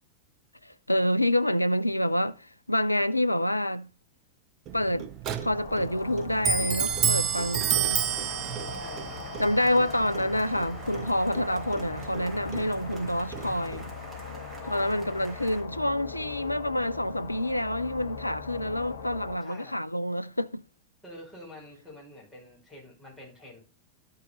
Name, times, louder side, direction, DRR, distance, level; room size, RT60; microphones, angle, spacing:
voice 1, 0.6-3.9 4.7-5.1 5.4-8.4 9.4-13.9 14.7-20.6, left 1 dB, 85° left, 0.4 m, -27 dB
Clock, 4.7-13.9, right 7 dB, 35° right, 0.8 m, -31 dB
sound 1, 5.4-19.4, left 4 dB, 65° left, 1.0 m, -40 dB
sound 2, 8.1-15.6, right 2 dB, 15° right, 3.6 m, -48 dB
voice 2, 8.7-9.2 14.6-15.3 19.4-19.8 21.0-23.6, left 1 dB, 5° left, 5.7 m, -47 dB
12.0 x 5.5 x 3.8 m
figure-of-eight pair, 90°, 0 cm